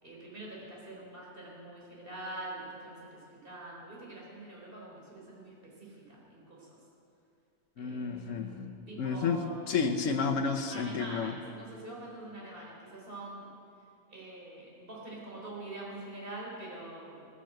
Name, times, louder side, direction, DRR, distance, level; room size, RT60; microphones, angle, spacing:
voice 1, 0.0-3.0 3.4-5.5 5.8-6.7 7.8-8.5 8.9-9.7 10.7-13.5 14.1-17.3, right 2 dB, 45° right, -4 dB, 4.1 m, -45 dB
voice 2, 7.8-11.3, left 5 dB, 90° left, 4 dB, 1.3 m, -31 dB
18.0 x 10.0 x 7.8 m, 2.7 s
omnidirectional pair, 1.3 m